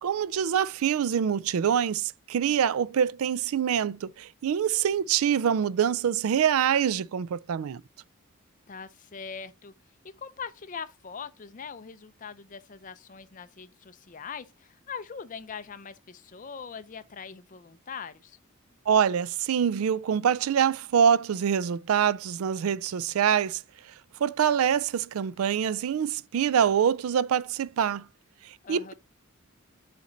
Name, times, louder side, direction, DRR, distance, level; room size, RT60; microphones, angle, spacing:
voice 1, 0.0-7.8 18.9-23.6 24.2-28.0 28.4-28.9, right 8 dB, 85° right, 0.4 m, -25 dB
voice 2, 8.7-9.7 10.0-18.4 28.6-28.9, left 6 dB, 40° left, 0.5 m, -41 dB
7.3 x 4.3 x 3.8 m
head